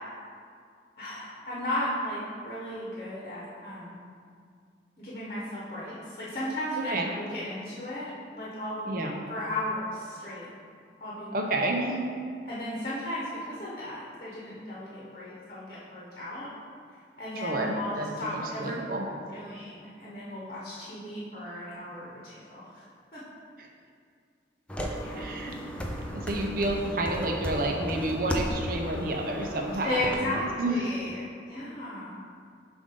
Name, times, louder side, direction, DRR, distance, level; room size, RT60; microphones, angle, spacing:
voice 1, 1.0-4.0 5.0-8.9 9.3-10.5 11.0-11.4 12.4-16.5 17.2-18.8 19.3-22.8 23.1-23.2 24.9-25.4 29.8-32.2, left 1 dB, 40° left, -7 dB, 1.1 m, -35 dB
voice 2, 11.3-12.1 17.4-19.0 23.6-23.7 25.2-25.5 26.1-30.9, right 1 dB, 55° right, 1 dB, 0.6 m, -30 dB
sound 1, 24.7-30.1, equal, 5° left, 0.4 m, -35 dB
7.2 x 2.6 x 5.2 m, 2.2 s
head